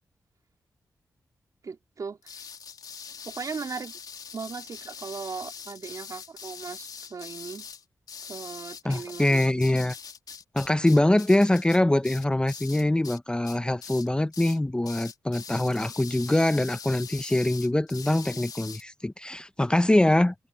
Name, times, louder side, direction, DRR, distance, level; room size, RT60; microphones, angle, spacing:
voice 1, 1.6-2.5 3.2-4.0 4.3-7.7 8.3-9.4, right 5 dB, 55° right, 3.6 m, -38 dB
sound 1, 2.2-13.2 13.4-14.1 14.3-14.6 14.8-18.8, left 6 dB, 70° left, 3.5 m, -42 dB
voice 2, 8.8-9.9 10.5-20.3, left 1 dB, 15° left, 0.8 m, -23 dB
open air
cardioid pair, 60°, 7 cm